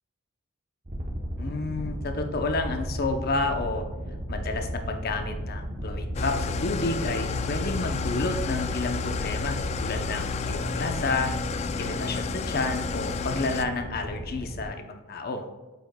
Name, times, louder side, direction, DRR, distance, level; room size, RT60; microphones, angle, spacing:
sound 1, 0.9-14.7, equal, 35° right, 0.9 m, -35 dB
voice 1, 1.4-3.9 4.3-11.3 11.8-15.5, left 3 dB, 50° left, 6 dB, 0.7 m, -30 dB
Engine starting / Idling, 6.1-13.6, left 5 dB, 35° left, 0.3 m, -31 dB
9.0 x 5.0 x 2.2 m, 1.2 s
head